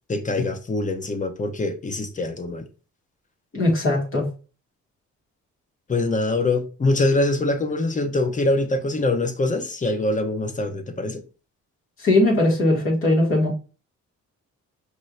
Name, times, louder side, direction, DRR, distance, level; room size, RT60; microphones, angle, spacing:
voice 1, 0.1-2.6 5.9-11.2, left 2 dB, 25° left, 0.9 m, -24 dB
voice 2, 3.5-4.3 12.0-13.5, left 1 dB, 45° left, 2.4 m, -19 dB
5.3 x 3.2 x 2.6 m
cardioid pair, 90°, 30 cm